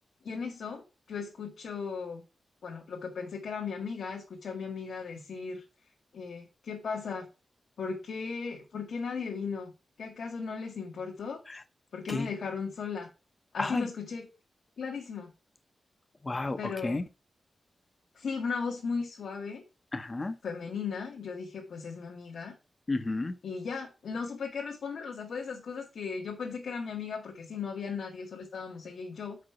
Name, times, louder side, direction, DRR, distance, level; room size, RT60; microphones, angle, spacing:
voice 1, 0.2-2.2 2.6-5.6 6.1-7.3 7.8-9.7 10.0-11.4 11.9-13.1 13.5-14.3 14.8-15.3 16.6-17.0 18.1-19.6 20.4-22.5 23.4-29.4, left 5 dB, 85° left, 1.2 m, -36 dB
voice 2, 16.2-17.0 19.9-20.4 22.9-23.3, left 2 dB, 25° left, 0.5 m, -32 dB
4.9 x 4.7 x 5.7 m
wide cardioid pair, 125°, 0 cm